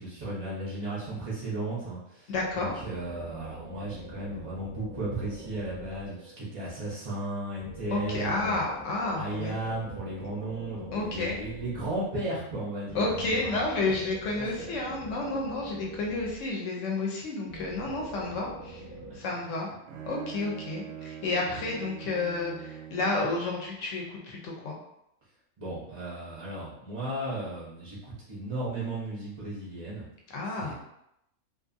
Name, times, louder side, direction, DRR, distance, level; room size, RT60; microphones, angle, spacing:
voice 1, 0.0-8.6 9.2-13.8 14.4-14.7 19.0-19.3 21.5-21.6 25.6-30.0 30.5-30.7, right 2 dB, 45° right, -6 dB, 0.4 m, -35 dB
voice 2, 2.3-2.7 7.9-9.6 10.9-11.4 12.9-18.8 19.1-19.7 20.1-24.8 30.3-30.7, left 3 dB, 65° left, -1 dB, 0.9 m, -31 dB
sound 1, 2.3-6.5 7.6-12.2 12.8-16.9 17.5-19.2, right 1 dB, 30° left, 0.8 m, -45 dB
Bowed string instrument, 19.4-23.5, right 8 dB, 65° right, 0.8 m, -43 dB
2.5 x 2.5 x 2.5 m, 0.80 s
omnidirectional pair, 1.6 m